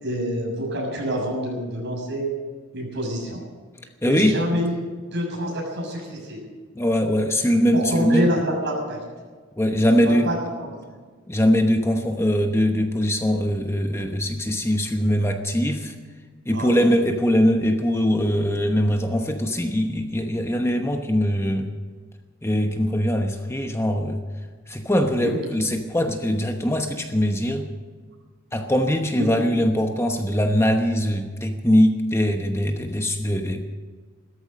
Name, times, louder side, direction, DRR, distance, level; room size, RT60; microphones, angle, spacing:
voice 1, 0.0-2.4 2.7-3.4 4.0-4.7 5.1-6.4 7.7-9.0 10.0-11.0 16.5-16.8 25.1-25.4 29.2-29.3, equal, 60° right, -1 dB, 6.6 m, -27 dB
voice 2, 4.0-4.4 6.7-8.3 9.6-10.3 11.3-15.9 16.5-21.7 22.4-24.2 24.7-27.7 28.5-33.6, equal, 15° left, 4 dB, 1.0 m, -22 dB
16.0 x 13.5 x 6.4 m, 1.5 s
head